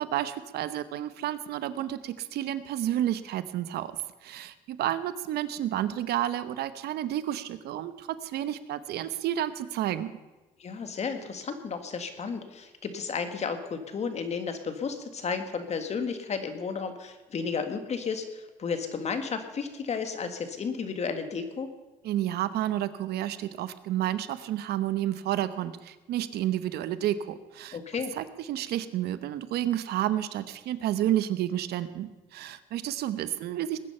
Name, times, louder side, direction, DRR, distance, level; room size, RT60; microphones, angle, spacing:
voice 1, 0.0-3.9 4.2-10.1 22.0-27.8 28.2-33.8, right 12 dB, 75° right, 13 dB, 0.9 m, -30 dB
voice 2, 10.6-21.7 27.7-28.1, left 5 dB, 40° left, 8 dB, 1.9 m, -33 dB
20.0 x 9.8 x 5.5 m, 1.2 s
cardioid pair, 110°, 17 cm